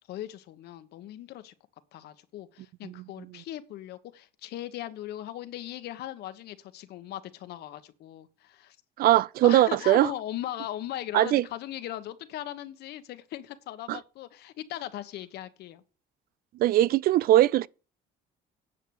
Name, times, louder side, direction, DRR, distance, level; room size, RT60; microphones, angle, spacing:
voice 1, 0.1-1.5 1.9-8.8 9.4-15.8, left 13 dB, 75° left, 1.3 m, -39 dB
voice 2, 9.0-10.1 11.1-11.4 13.9-14.0 16.6-17.7, right 14 dB, 60° right, 0.4 m, -21 dB
10.0 x 6.8 x 6.5 m
cardioid pair, 110°, 17 cm